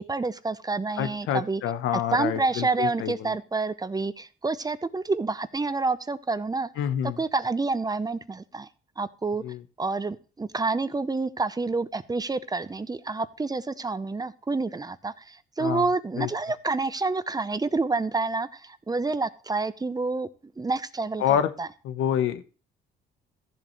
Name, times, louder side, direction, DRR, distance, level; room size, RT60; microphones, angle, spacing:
voice 1, 0.0-1.6 1.9-6.7 7.2-8.7 9.0-9.4 9.8-20.3 20.6-21.7, right 3 dB, 20° right, 14 dB, 0.7 m, -28 dB
voice 2, 1.0-3.3 6.8-7.2 9.4-9.6 15.6-15.9 16.2-16.3 21.2-21.5 21.8-22.4, left 10 dB, 90° left, 11 dB, 0.9 m, -27 dB
14.5 x 7.5 x 3.1 m, 0.36 s
cardioid pair, 90°, 20 cm